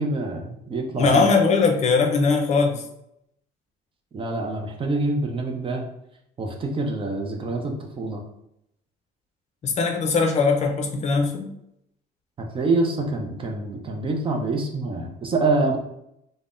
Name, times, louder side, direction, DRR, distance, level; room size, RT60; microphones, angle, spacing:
voice 1, 0.0-1.3 4.1-5.8 6.4-8.2 12.4-15.8, right 2 dB, 30° right, 2 dB, 0.5 m, -26 dB
voice 2, 1.0-2.8 9.6-11.5, left 4 dB, 40° left, 3 dB, 0.5 m, -20 dB
3.4 x 2.0 x 2.5 m, 0.78 s
cardioid pair, 110°, 17 cm